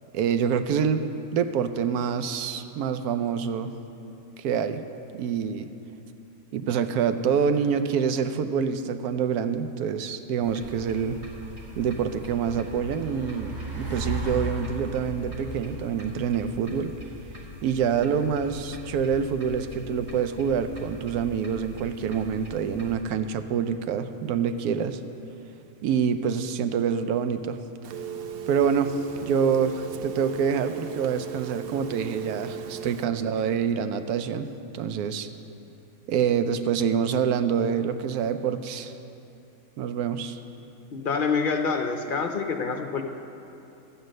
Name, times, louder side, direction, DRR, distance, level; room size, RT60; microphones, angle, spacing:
voice 1, 0.1-1.0 1.3-3.7 4.4-4.8 5.1-5.7 6.5-11.2 11.8-16.9 17.6-25.0 25.8-27.6 28.5-28.9 29.2-35.3 36.1-38.9 39.8-40.4, right 7 dB, 85° right, 9 dB, 1.1 m, -26 dB
sound 1, 10.4-22.9, right 1 dB, 45° right, 2.2 m, -39 dB
Telephone, 27.8-33.0, right 8 dB, 65° right, 0.5 m, -37 dB
voice 2, 40.9-43.0, left 5 dB, 55° left, 4 dB, 0.6 m, -26 dB
12.5 x 8.9 x 6.3 m, 2.8 s
omnidirectional pair, 1.6 m